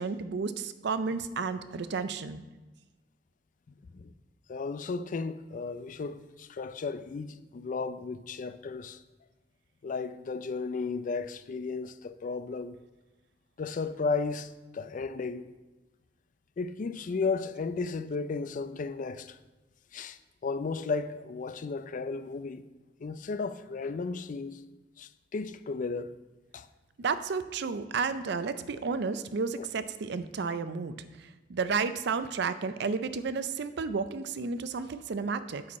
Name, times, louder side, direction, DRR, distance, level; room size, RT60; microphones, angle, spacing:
voice 1, 0.0-2.4 27.0-35.8, right 5 dB, 65° right, 0.5 m, -32 dB
voice 2, 4.5-9.0 9.8-12.8 13.6-15.5 16.6-19.4 19.9-22.6 23.0-24.6 25.0-26.1 26.5-26.7 29.6-29.7, left 4 dB, 45° left, 0.4 m, -34 dB
8.5 x 6.3 x 4.2 m
head